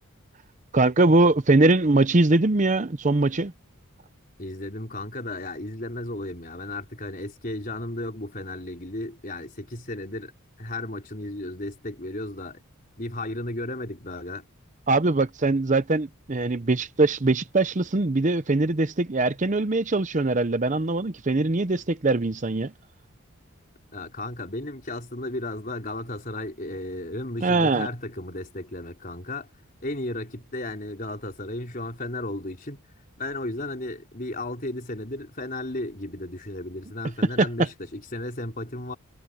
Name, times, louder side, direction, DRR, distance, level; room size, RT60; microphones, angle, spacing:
voice 1, 0.7-3.5 14.9-22.7 27.4-27.9 37.4-37.5, right 2 dB, 35° right, 0.7 m, -22 dB
voice 2, 4.4-10.3 10.6-12.6 13.0-14.5 23.9-29.5 29.8-32.8 33.2-38.9, left 1 dB, 40° left, 4.2 m, -34 dB
head